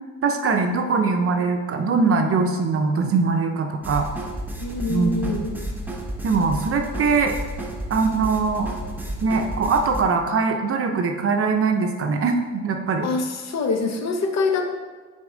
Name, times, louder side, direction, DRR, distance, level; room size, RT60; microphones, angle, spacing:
voice 1, 0.2-4.1 4.9-5.3 6.2-7.3 7.9-8.7 9.2-13.1, right 4 dB, 50° right, 4 dB, 0.6 m, -22 dB
sound 1, 3.8-10.0, right 1 dB, 5° right, 0.9 m, -32 dB
voice 2, 4.6-5.5 13.0-14.7, left 3 dB, 60° left, 5 dB, 0.8 m, -24 dB
6.0 x 4.1 x 3.8 m, 1.5 s
cardioid pair, 90°, 30 cm